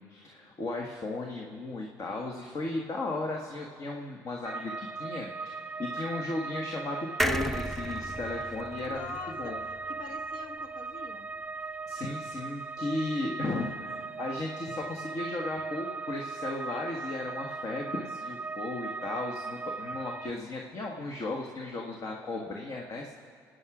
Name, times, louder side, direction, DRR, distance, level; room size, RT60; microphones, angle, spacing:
voice 1, 0.0-9.1 9.4-9.6 11.9-23.2, left 2 dB, 45° left, 0 dB, 1.6 m, -35 dB
sound 1, 4.4-20.3, right 4 dB, 20° right, 0.3 m, -38 dB
sound 2, 7.2-10.7 11.1-11.2 11.4-11.5, equal, 5° left, 0.7 m, -34 dB
voice 2, 8.9-11.3 12.0-12.1, left 5 dB, 70° left, 5 dB, 1.4 m, -44 dB
28.0 x 9.7 x 5.0 m, 2.2 s
supercardioid pair, 85°, 8 cm